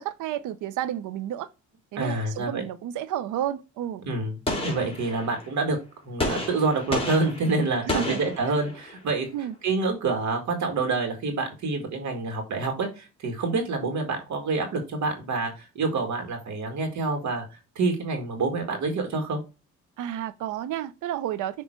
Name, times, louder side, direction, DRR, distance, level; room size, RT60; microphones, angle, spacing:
voice 1, 0.0-1.5 1.9-4.0 7.8-8.2 9.3-9.5 20.0-21.6, right 11 dB, 85° right, 0.7 m, -31 dB
voice 2, 2.0-2.6 4.1-4.3 4.6-5.8 6.0-9.3 9.6-17.4 17.8-19.4, right 3 dB, 70° right, 2.0 m, -27 dB
Gunshot gunfire, 4.5-5.5 6.2-9.0, left 2 dB, 20° left, 2.4 m, -31 dB
6.7 x 3.2 x 4.5 m
cardioid pair, 90°, 30 cm